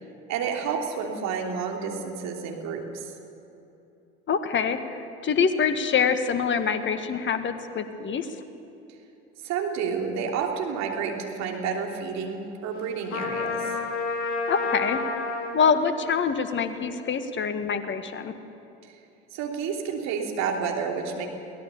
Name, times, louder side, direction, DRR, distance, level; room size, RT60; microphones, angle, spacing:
voice 1, 0.3-3.1 9.4-13.7 19.3-21.3, right 6 dB, 55° right, 1 dB, 3.2 m, -30 dB
voice 2, 4.3-8.3 14.5-15.0 15.5-18.3, left 6 dB, 35° left, 8 dB, 1.8 m, -25 dB
Trumpet, 13.1-15.6, left 4 dB, 55° left, 3.8 m, -29 dB
23.0 x 17.0 x 7.0 m, 2.8 s
hypercardioid pair, 70°, 33 cm